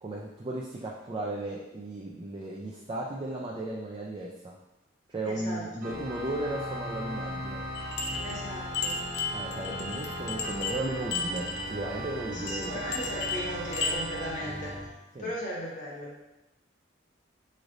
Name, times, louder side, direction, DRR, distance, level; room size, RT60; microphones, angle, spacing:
voice 1, 0.0-4.5 5.1-7.6 9.3-13.1 15.1-15.3, right 1 dB, 25° right, -3 dB, 0.3 m, -35 dB
voice 2, 5.2-6.0 8.2-9.0 12.3-14.9 15.2-16.1, equal, 40° left, -5 dB, 1.1 m, -37 dB
Organ, 5.8-14.9, right 1 dB, 50° right, 0.8 m, -38 dB
sound 1, 7.7-14.0, left 4 dB, 60° left, 0.6 m, -35 dB
5.0 x 3.2 x 2.5 m, 0.99 s
head